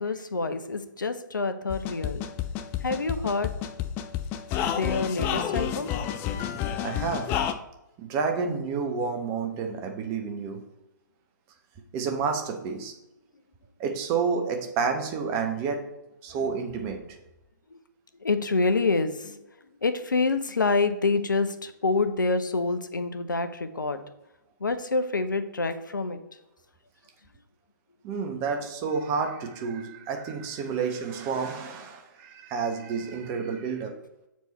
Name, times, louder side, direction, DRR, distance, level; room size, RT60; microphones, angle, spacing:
voice 1, 0.0-2.3 2.8-3.5 4.8-5.9 17.7-17.8 18.2-19.4 19.8-24.0 24.6-26.2, left 3 dB, 75° left, 10 dB, 0.8 m, -27 dB
sound 1, 1.7-7.5, left 10 dB, 20° left, 0.4 m, -30 dB
voice 2, 6.8-7.3 8.0-10.7 11.9-12.9 13.8-15.9 16.2-17.1 28.0-34.0, right 5 dB, 25° right, 4 dB, 1.0 m, -30 dB
8.0 x 4.7 x 4.2 m, 0.93 s
figure-of-eight pair, 125°, 11 cm